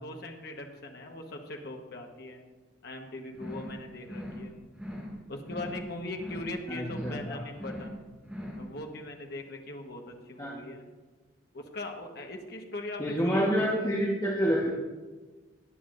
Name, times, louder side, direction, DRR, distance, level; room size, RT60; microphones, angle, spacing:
voice 1, 0.0-2.4 2.8-4.6 5.3-8.0 8.6-10.8 11.5-13.9, left 2 dB, 50° left, 2 dB, 1.2 m, -40 dB
sound 1, 3.3-3.8 4.0-4.5 4.7-5.2 5.4-5.9 6.1-6.6 6.8-7.3 7.5-8.0 8.2-8.7, equal, 10° right, 2.2 m, -40 dB
voice 2, 6.7-7.4 10.4-10.5 13.0-14.7, equal, 15° left, -4 dB, 1.2 m, -28 dB
18.0 x 8.9 x 2.6 m, 1.3 s
head